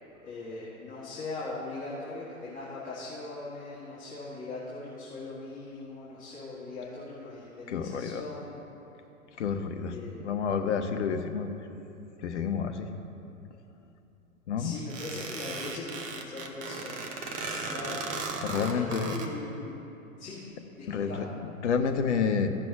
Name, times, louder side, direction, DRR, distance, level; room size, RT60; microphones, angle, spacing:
voice 1, 0.2-8.6 9.9-10.3 14.6-19.8 20.2-20.4 20.8-21.2, left 3 dB, 20° left, -8 dB, 1.7 m, -40 dB
voice 2, 7.7-8.3 9.4-11.5 12.2-12.9 14.5-14.8 18.4-19.2 20.9-22.5, left 6 dB, 55° left, 7 dB, 0.9 m, -29 dB
sound 1, 14.9-19.3, right 4 dB, 20° right, 0.6 m, -36 dB
15.5 x 6.0 x 3.5 m, 2.9 s
figure-of-eight pair, 105°, 43 cm